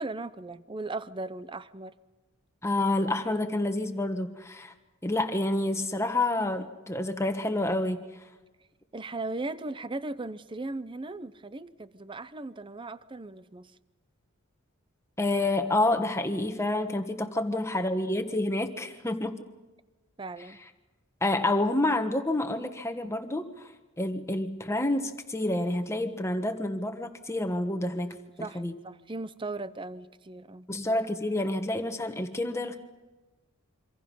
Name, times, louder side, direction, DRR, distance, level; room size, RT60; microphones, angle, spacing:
voice 1, 0.0-1.9 8.9-13.7 20.2-20.6 28.4-30.7, right 2 dB, 25° right, 15 dB, 0.7 m, -37 dB
voice 2, 2.6-4.7 5.0-8.0 15.2-19.4 21.2-23.7 24.0-28.7 30.7-32.8, left 2 dB, 15° left, 6 dB, 1.4 m, -28 dB
27.0 x 25.5 x 5.5 m, 1.2 s
head